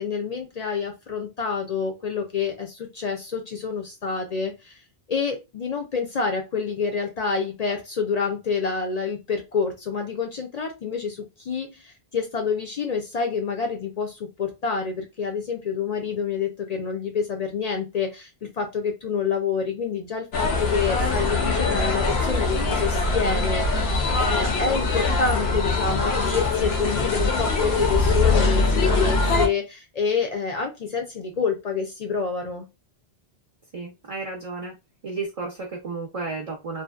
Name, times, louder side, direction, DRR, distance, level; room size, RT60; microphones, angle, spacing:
voice 1, 0.0-4.8 5.1-32.7, left 5 dB, 55° left, 3 dB, 0.5 m, -28 dB
sound 1, 20.3-29.5, left 3 dB, 85° left, 0.9 m, -22 dB
voice 2, 33.7-34.7 35.0-36.8, right 3 dB, 50° right, 1 dB, 0.5 m, -32 dB
2.7 x 2.1 x 2.3 m, 0.24 s
omnidirectional pair, 1.1 m